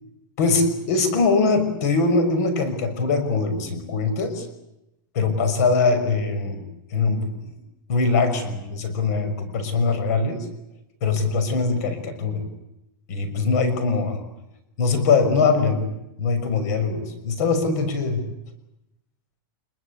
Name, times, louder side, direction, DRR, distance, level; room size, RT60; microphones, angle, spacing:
voice 1, 0.4-4.5 5.1-6.6 6.9-7.5 7.9-10.4 11.0-12.4 13.1-14.2 14.8-15.8 16.2-18.2, left 4 dB, 45° left, 9 dB, 6.0 m, -22 dB
26.0 x 22.5 x 8.4 m, 0.88 s
supercardioid pair, 175°, 12 cm